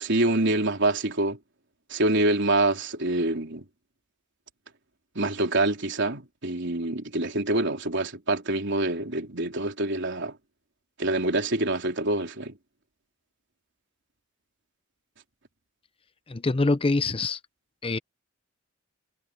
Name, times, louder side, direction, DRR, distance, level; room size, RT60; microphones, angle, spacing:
voice 1, 0.0-1.4 1.9-3.6 5.2-10.3 11.0-12.5, right 2 dB, 60° right, 3.8 m, -26 dB
voice 2, 16.3-17.4 17.8-18.0, left 3 dB, 30° left, 0.6 m, -24 dB
head